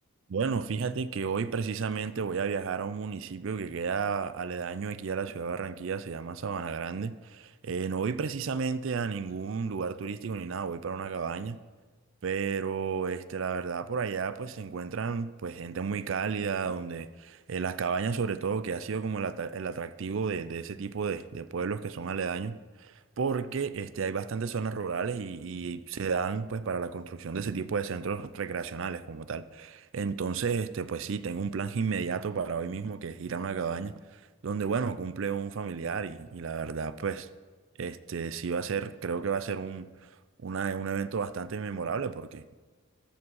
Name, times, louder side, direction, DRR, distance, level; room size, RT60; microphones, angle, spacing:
voice 1, 0.3-11.6 12.2-37.3 37.8-40.1 40.4-42.5, right 5 dB, 60° right, 14 dB, 0.4 m, -32 dB
14.0 x 5.2 x 5.5 m, 1.4 s
head